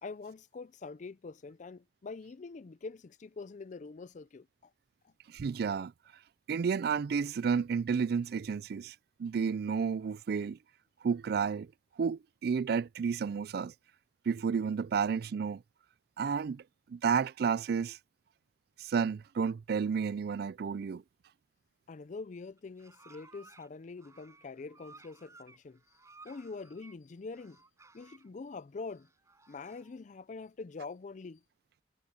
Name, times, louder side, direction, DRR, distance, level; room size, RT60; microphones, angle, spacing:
voice 1, 0.0-4.7 5.0-5.1 21.9-25.8 26.2-27.6 27.9-29.1 29.5-31.4, left 4 dB, 45° left, 0.4 m, -44 dB
voice 2, 5.3-5.9 6.5-10.6 11.0-11.7 12.0-13.7 14.3-15.6 16.2-16.6 16.9-18.0 18.8-21.0, right 6 dB, 60° right, 0.3 m, -31 dB
sound 1, 22.6-23.7 24.0-27.0 27.3-28.3 28.8-30.0, right 3 dB, 15° right, 7.2 m, -58 dB
head